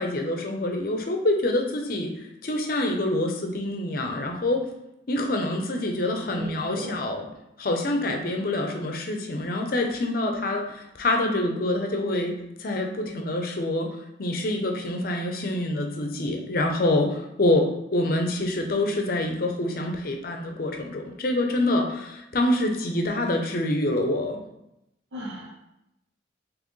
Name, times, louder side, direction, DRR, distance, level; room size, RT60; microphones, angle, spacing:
voice 1, 0.0-2.1 2.4-4.6 5.1-7.3 7.6-13.9 14.2-24.4, left 1 dB, 50° left, 3 dB, 0.6 m, -26 dB
voice 2, 6.4-7.1 25.1-25.5, equal, 75° right, -5 dB, 0.7 m, -35 dB
4.3 x 3.0 x 3.1 m, 0.85 s
head